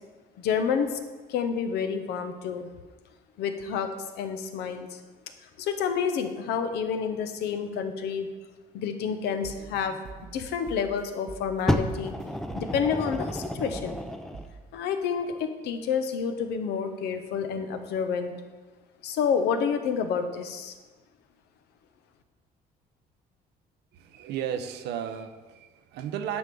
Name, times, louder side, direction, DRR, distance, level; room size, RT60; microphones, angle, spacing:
voice 1, 0.4-1.0 1.3-2.7 3.4-3.9 4.2-5.0 5.6-8.3 8.7-9.9 10.3-12.1 12.5-13.9 14.7-18.3 19.0-20.7, left 6 dB, 80° left, 7 dB, 0.9 m, -29 dB
sound 1, 9.2-11.0 11.3-11.6 11.9-12.2 12.5-12.8 13.1-13.5 13.7-14.1 14.3-14.6, right 4 dB, 45° right, 0.8 m, -45 dB
Fire, 11.7-14.5 15.3-15.4, equal, ahead, 0.5 m, -30 dB
voice 2, 23.9-26.4, right 9 dB, 80° right, 9 dB, 0.7 m, -34 dB
9.6 x 3.7 x 6.9 m, 1.3 s
cardioid pair, 110°, 17 cm